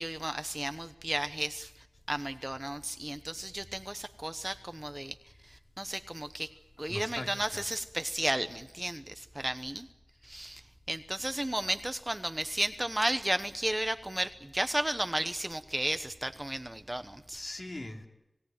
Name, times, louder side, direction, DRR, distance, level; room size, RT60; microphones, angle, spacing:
voice 1, 0.0-1.7 2.1-5.2 5.5-6.5 6.8-9.9 10.2-10.6 10.9-17.4, right 1 dB, 15° right, 10 dB, 0.9 m, -33 dB
voice 2, 6.9-7.6 17.3-18.1, left 1 dB, 45° left, 3 dB, 2.9 m, -40 dB
27.0 x 17.5 x 9.1 m, 0.94 s
wide cardioid pair, 80°, 0 cm